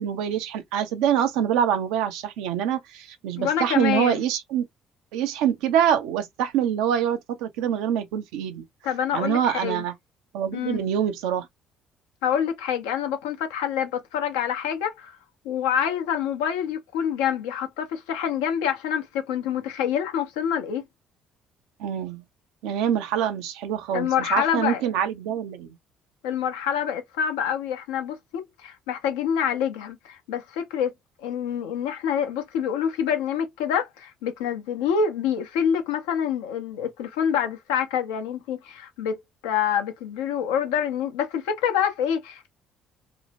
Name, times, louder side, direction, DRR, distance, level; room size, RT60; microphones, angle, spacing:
voice 1, 0.0-4.6 5.1-8.6 9.1-9.9 10.3-11.5 21.8-22.2 22.6-25.8, right 9 dB, 75° right, 0.5 m, -25 dB
voice 2, 3.4-4.2 8.8-9.8 10.5-10.8 12.2-15.2 15.4-20.8 23.9-24.8 26.2-30.9 31.2-42.5, left 8 dB, 80° left, 0.7 m, -26 dB
2.6 x 2.0 x 2.8 m
hypercardioid pair, 55°, 0 cm